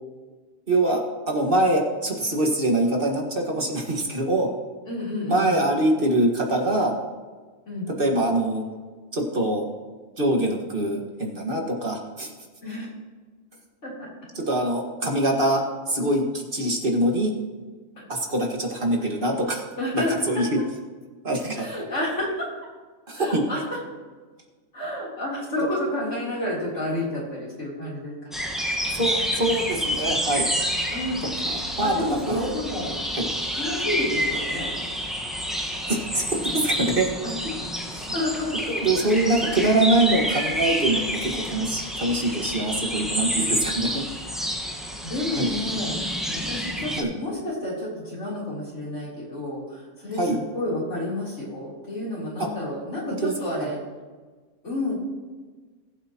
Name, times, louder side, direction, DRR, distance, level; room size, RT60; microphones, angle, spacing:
voice 1, 0.7-4.5 5.3-6.9 8.0-8.6 9.1-9.6 10.2-12.3 14.4-15.6 15.9-17.3 18.1-19.6 20.3-20.6 21.2-21.6 23.1-23.4 28.9-30.5 31.8-32.5 33.2-33.3 35.9-37.1 38.0-38.1 38.7-43.9 45.4-45.5 47.0-47.1 50.2-50.4 53.2-53.3, right 1 dB, 45° right, 0 dB, 2.0 m, -24 dB
voice 2, 4.9-5.5 7.7-7.9 12.6-12.9 13.8-14.1 19.8-20.2 21.5-22.5 23.1-23.8 24.7-28.4 30.9-31.2 31.6-33.0 33.5-34.7 37.2-37.3 38.1-38.7 45.0-46.0 46.3-53.8 54.6-54.9, left 1 dB, 80° left, -5 dB, 4.0 m, -30 dB
sound 1, 28.3-47.0, equal, ahead, 1.3 m, -29 dB
19.0 x 8.2 x 3.0 m, 1.4 s
omnidirectional pair, 1.2 m